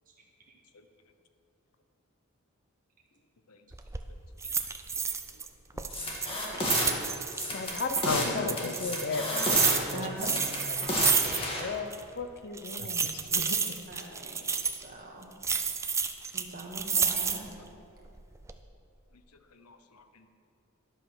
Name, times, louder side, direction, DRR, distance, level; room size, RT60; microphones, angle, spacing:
sound 1, 3.7-4.0 4.4-5.5 5.8-8.1 8.5-11.7 11.9-12.0 12.6-14.8 15.4-17.5 18.0-18.6, right 6 dB, 15° right, 0.4 m, -30 dB
voice 1, 5.7-6.9 8.0-8.7 12.8-12.9 13.3-13.6 19.7-19.8, left 3 dB, 90° left, 8 dB, 0.8 m, -36 dB
sound 2, 5.9-6.9 7.3-8.3 8.6-9.7 10.2-11.6, left 1 dB, 25° left, 1.9 m, -31 dB
voice 2, 7.5-8.0 8.2-13.5, left 3 dB, 45° left, 8 dB, 0.7 m, -37 dB
voice 3, 9.9-10.4 13.9-14.4 14.7-15.3 16.3-17.4, right 2 dB, 40° right, -1 dB, 1.8 m, -42 dB
11.5 x 8.0 x 6.2 m, 2.7 s
head